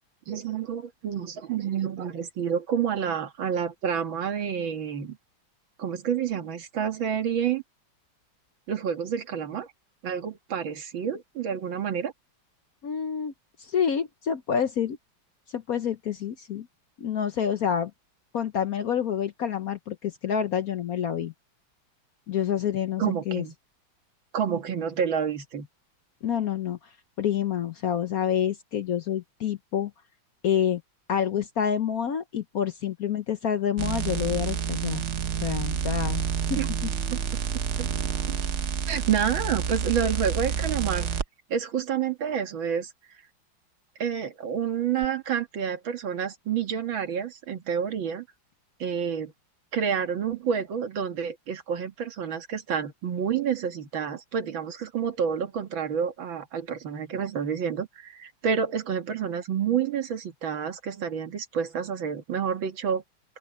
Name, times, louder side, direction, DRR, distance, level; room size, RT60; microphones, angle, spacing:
voice 1, 0.3-5.2 5.8-7.6 8.7-9.7 10.0-12.1 23.0-23.5 24.3-25.7 36.6-36.7 37.1-37.2 37.8-37.9 38.9-41.1 41.5-42.9 44.0-48.3 48.8-49.3 49.7-63.0, right 7 dB, 70° right, 2.4 m, -29 dB
voice 2, 12.8-13.3 13.6-15.0 15.5-16.7 17.0-17.9 18.3-21.3 22.3-23.4 26.2-26.8 27.2-29.9 30.4-30.8 31.1-35.0 35.4-36.2 36.5-36.6, left 8 dB, 60° left, 1.1 m, -27 dB
sound 1, 33.8-41.2 45.0-45.1, right 7 dB, 55° right, 0.8 m, -29 dB
open air
omnidirectional pair, 2.2 m